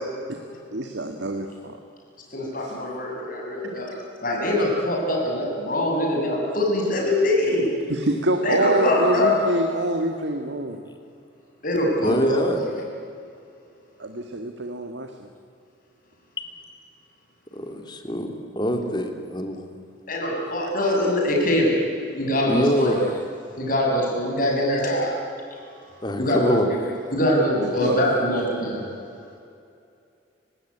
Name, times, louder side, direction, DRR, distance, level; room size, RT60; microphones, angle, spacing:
voice 1, 0.7-1.8 2.6-2.7 7.9-10.8 14.0-15.3 27.6-28.0, right 1 dB, 70° right, 5 dB, 1.8 m, -26 dB
voice 2, 2.3-3.9 4.2-7.7 8.4-9.4 11.6-12.7 20.1-21.8 22.1-23.0 23.6-25.1 26.2-26.6 27.1-28.8, left 1 dB, 45° left, -1 dB, 7.1 m, -23 dB
voice 3, 12.0-12.6 16.4-16.5 17.5-18.3 18.6-19.6 22.4-23.0 26.0-26.7, equal, 25° left, 4 dB, 2.8 m, -24 dB
30.0 x 17.5 x 9.8 m, 2.5 s
head